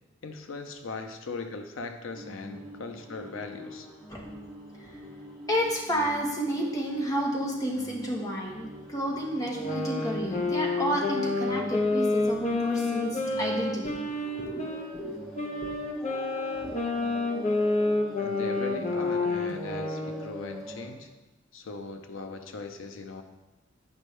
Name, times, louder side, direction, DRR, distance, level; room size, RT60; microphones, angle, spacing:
voice 1, 0.2-3.9 18.2-21.1 21.5-23.2, left 3 dB, 80° left, 6 dB, 0.6 m, -39 dB
sound 1, 2.1-20.9, equal, 5° left, 1.7 m, -44 dB
voice 2, 5.5-14.1 14.4-15.2 15.6-15.7 16.5-16.7, equal, 20° left, -1 dB, 1.2 m, -31 dB
sound 2, 9.5-14.9 15.3-20.2, left 2 dB, 35° left, 0.8 m, -29 dB
9.3 x 5.3 x 3.2 m, 1.0 s
head